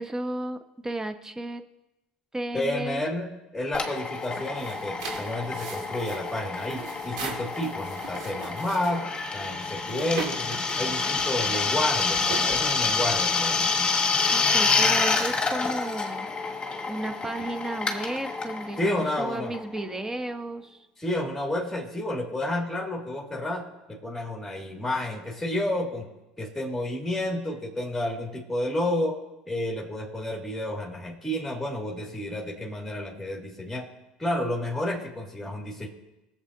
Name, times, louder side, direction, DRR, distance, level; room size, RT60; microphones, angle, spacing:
voice 1, 0.0-1.6 2.3-3.1 14.3-16.3 16.9-20.9, right 1 dB, 15° right, 8 dB, 1.1 m, -33 dB
voice 2, 2.5-9.0 9.3-13.9 18.8-19.6 21.0-26.1 26.4-29.2 29.5-33.9 34.2-35.9, left 1 dB, 5° left, -3 dB, 2.4 m, -30 dB
Drill, 3.7-20.1, left 4 dB, 25° left, 1.6 m, -28 dB
sound 1, 4.1-13.3, right 5 dB, 80° right, 2.2 m, -40 dB
19.5 x 7.5 x 2.9 m, 0.98 s
hypercardioid pair, 85°, 4 cm